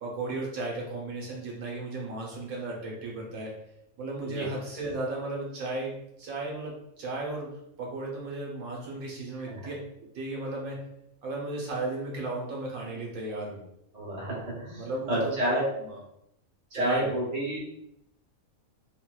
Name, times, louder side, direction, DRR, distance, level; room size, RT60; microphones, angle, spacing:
voice 1, 0.0-3.5 4.0-5.9 6.2-7.5 7.8-9.7 10.1-10.8 11.2-13.6 14.8-15.6 15.9-16.0 16.7-17.1, right 2 dB, 85° right, -2 dB, 1.3 m, -34 dB
voice 2, 13.9-15.6 16.7-17.6, right 1 dB, 45° right, -5 dB, 0.5 m, -30 dB
3.9 x 2.3 x 2.3 m, 0.79 s
omnidirectional pair, 1.5 m